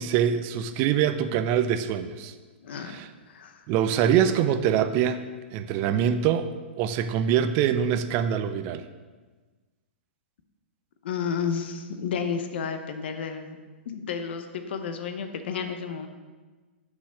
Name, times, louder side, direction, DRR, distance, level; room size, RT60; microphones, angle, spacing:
voice 1, 0.0-2.3 2.8-3.1 3.7-5.2 5.5-8.8, right 9 dB, 35° right, 10 dB, 0.4 m, -24 dB
voice 2, 2.6-2.9 3.3-3.6 11.0-13.6 13.9-16.1, left 6 dB, 60° left, 7 dB, 0.7 m, -31 dB
6.1 x 3.8 x 5.9 m, 1.3 s
hypercardioid pair, 115°, 6 cm